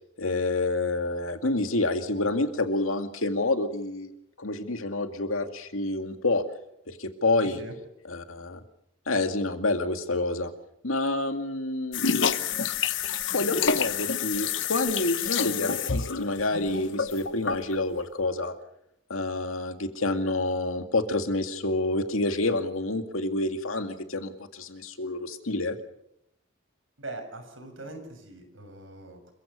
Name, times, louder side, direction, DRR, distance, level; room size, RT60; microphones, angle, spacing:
voice 1, 0.2-4.1 4.4-6.4 6.9-7.6 8.1-8.6 9.1-10.5 10.8-12.0 13.3-18.5 19.1-25.8, left 2 dB, 80° left, 7 dB, 2.3 m, -28 dB
voice 2, 7.4-7.7 27.0-29.3, right 2 dB, 70° right, 5 dB, 6.9 m, -41 dB
sound 1, 11.9-17.8, left 6 dB, 65° left, 1.1 m, -28 dB
27.5 x 16.0 x 6.8 m, 0.80 s
head